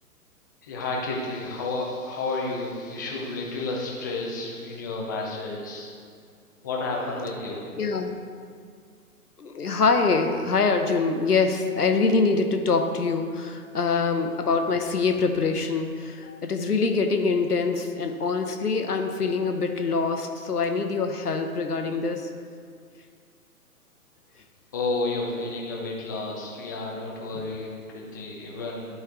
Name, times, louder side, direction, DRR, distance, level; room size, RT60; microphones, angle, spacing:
voice 1, 0.6-5.9 6.6-7.7 24.7-29.0, left 3 dB, 15° left, -2 dB, 0.5 m, -31 dB
voice 2, 7.8-8.1 9.4-22.3, left 4 dB, 80° left, 5 dB, 0.9 m, -24 dB
11.5 x 4.4 x 3.7 m, 2.1 s
figure-of-eight pair, 120°, 46 cm